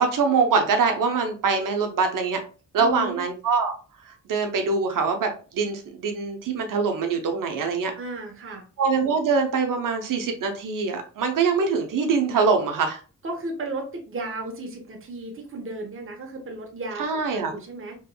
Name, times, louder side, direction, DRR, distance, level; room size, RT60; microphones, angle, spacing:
voice 1, 0.0-2.4 2.7-3.7 4.0-7.9 8.8-13.0 17.0-17.5, right 5 dB, 70° right, 5 dB, 0.8 m, -23 dB
voice 2, 2.8-3.2 7.9-8.6 13.2-18.0, right 2 dB, 40° right, 2 dB, 1.0 m, -34 dB
3.5 x 3.0 x 2.2 m, 0.37 s
cardioid pair, 60°, 34 cm